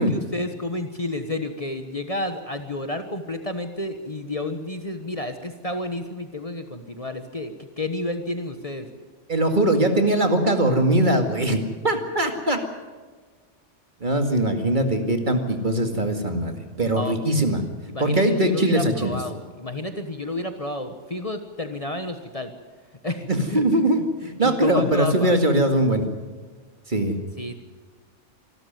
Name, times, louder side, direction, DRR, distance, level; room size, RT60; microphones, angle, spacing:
voice 1, 0.0-8.9 16.9-17.2 17.9-22.5 23.0-23.6 24.4-25.3 27.4-27.5, left 2 dB, 30° left, 7 dB, 1.3 m, -30 dB
voice 2, 9.3-12.6 14.0-17.6 18.0-19.2 23.3-26.0 26.9-27.2, right 1 dB, 40° right, 5 dB, 2.2 m, -21 dB
25.5 x 13.0 x 9.3 m, 1.4 s
omnidirectional pair, 1.2 m